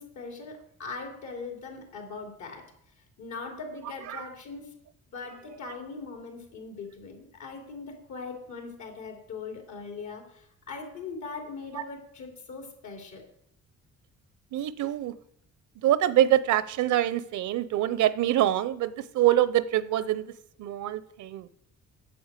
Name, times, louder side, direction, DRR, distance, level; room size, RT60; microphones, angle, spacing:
voice 1, 0.0-2.6 3.2-4.7 5.1-13.2, left 4 dB, 70° left, 3.2 m, -40 dB
voice 2, 14.5-15.1 15.8-20.3 20.6-21.5, right 13 dB, 75° right, 0.7 m, -25 dB
8.6 x 7.9 x 8.1 m
cardioid pair, 90°, 30 cm